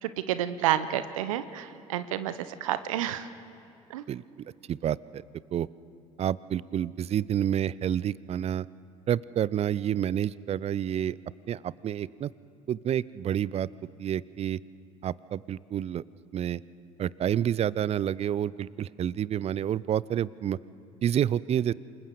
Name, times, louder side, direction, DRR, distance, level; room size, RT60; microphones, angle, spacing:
voice 1, 0.0-2.3 2.6-3.3 3.9-4.0, right 11 dB, 75° right, 13 dB, 0.9 m, -29 dB
voice 2, 4.1-5.2 5.5-5.7 6.2-8.7 9.1-11.2 11.5-12.3 12.7-13.7 14.0-14.6 15.0-16.0 16.3-16.6 17.0-20.6 21.0-21.7, right 10 dB, 35° right, 22 dB, 0.5 m, -29 dB
28.0 x 21.0 x 6.9 m, 2.7 s
hypercardioid pair, 65°, 17 cm